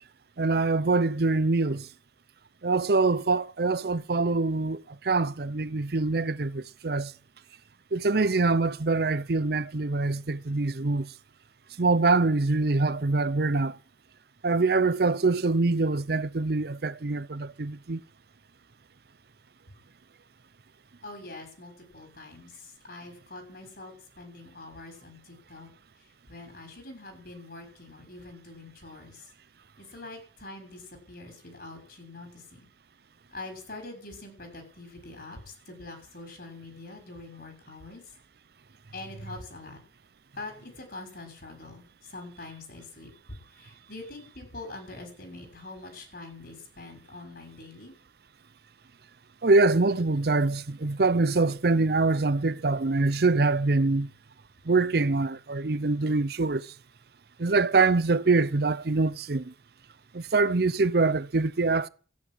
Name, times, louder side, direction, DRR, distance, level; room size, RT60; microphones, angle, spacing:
voice 1, 0.4-1.9 2.6-7.1 7.9-11.1 11.8-13.7 14.4-18.0 49.4-54.1 54.7-56.7 57.4-59.5 60.1-61.9, right 3 dB, 60° right, 0.7 m, -24 dB
voice 2, 21.0-25.7 26.3-29.2 29.8-32.7 33.3-38.0 38.9-39.8 40.4-47.9, left 2 dB, 60° left, 6.5 m, -44 dB
14.0 x 10.5 x 8.0 m
head